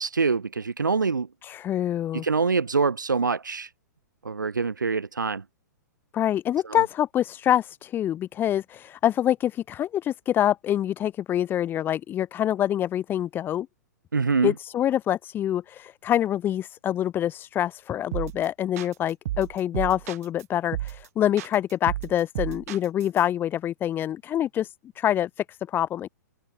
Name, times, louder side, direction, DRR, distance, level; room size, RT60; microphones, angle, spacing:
voice 1, 0.0-1.3 2.2-3.7 4.2-5.4 14.1-14.5, right 4 dB, 85° right, 0.7 m, -24 dB
voice 2, 1.4-2.3 6.1-13.7 14.4-26.1, left 11 dB, 20° left, 0.5 m, -26 dB
sound 1, 18.1-18.5 18.8-20.4 20.7-21.1 21.4-23.2, right 14 dB, 55° right, 1.8 m, -32 dB
figure-of-eight pair, 110°, 10 cm